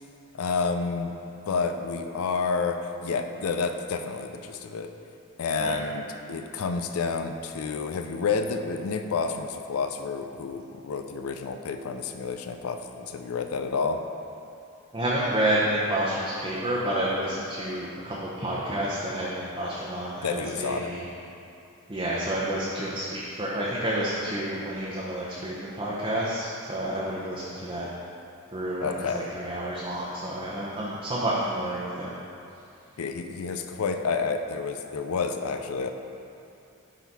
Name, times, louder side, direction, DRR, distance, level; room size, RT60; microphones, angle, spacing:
voice 1, 0.3-1.1 1.5-4.9 5.4-14.0 20.2-20.9 28.8-29.3 33.0-35.9, left 4 dB, 90° left, 6 dB, 0.4 m, -29 dB
voice 2, 14.9-21.0 21.9-27.9 28.5-32.1, right 1 dB, 25° right, -7 dB, 0.7 m, -29 dB
10.5 x 4.0 x 4.1 m, 2.7 s
head